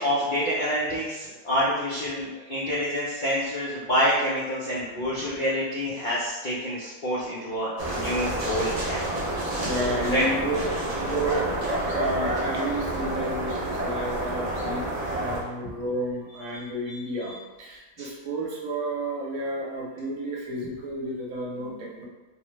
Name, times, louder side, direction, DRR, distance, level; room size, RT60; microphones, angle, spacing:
voice 1, 0.0-9.2 10.1-10.3 15.6-15.7 16.5-17.0 17.2-17.3 18.0-18.1, equal, 70° left, -8 dB, 0.4 m, -27 dB
sound 1, 7.8-15.4, right 1 dB, 60° right, 0.4 m, -29 dB
voice 2, 9.6-11.5 11.8-14.8 15.1-22.1, right 1 dB, 85° right, -3 dB, 1.1 m, -31 dB
2.7 x 2.1 x 3.0 m, 1.2 s
omnidirectional pair, 1.5 m